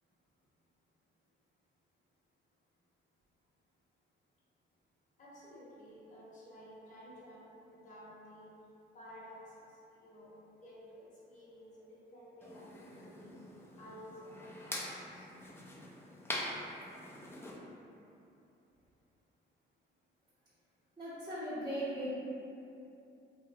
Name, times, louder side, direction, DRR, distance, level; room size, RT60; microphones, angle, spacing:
voice 1, 5.2-8.5 8.9-9.6 9.9-13.3 13.8-15.3, equal, 40° left, -8 dB, 0.9 m, -53 dB
sound 1, 12.4-17.6, left 1 dB, 10° left, 0.4 m, -44 dB
voice 2, 21.0-22.1, right 1 dB, 20° right, -12 dB, 0.7 m, -38 dB
2.7 x 2.0 x 2.7 m, 2.7 s
cardioid pair, 90°, 20 cm